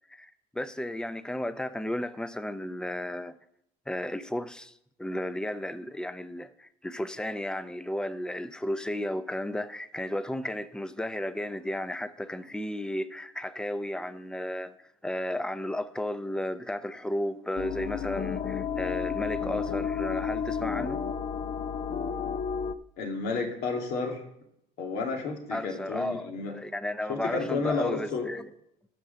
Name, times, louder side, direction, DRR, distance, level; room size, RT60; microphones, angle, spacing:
voice 1, 0.1-3.4 3.9-4.7 5.0-14.7 15.0-21.0 25.5-28.5, left 1 dB, 5° left, 0.6 m, -33 dB
sound 1, 17.6-22.7, left 7 dB, 45° left, 0.6 m, -31 dB
voice 2, 23.0-24.2 24.8-26.5 27.1-28.3, left 4 dB, 80° left, 2.4 m, -31 dB
13.5 x 5.0 x 6.6 m
cardioid pair, 110°, 17 cm